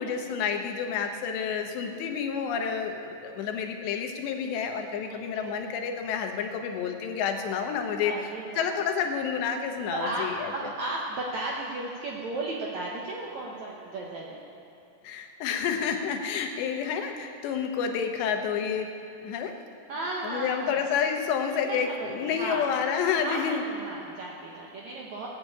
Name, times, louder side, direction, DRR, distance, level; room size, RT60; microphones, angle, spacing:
voice 1, 0.0-8.1 8.6-10.5 15.0-18.9 19.2-19.5 20.2-23.6, left 7 dB, 85° left, 4 dB, 3.3 m, -29 dB
voice 2, 8.0-8.7 9.9-14.4 19.9-20.8 21.5-22.7 23.2-25.3, right 2 dB, 70° right, -3 dB, 1.8 m, -35 dB
18.0 x 7.2 x 8.3 m, 2.6 s
omnidirectional pair, 4.9 m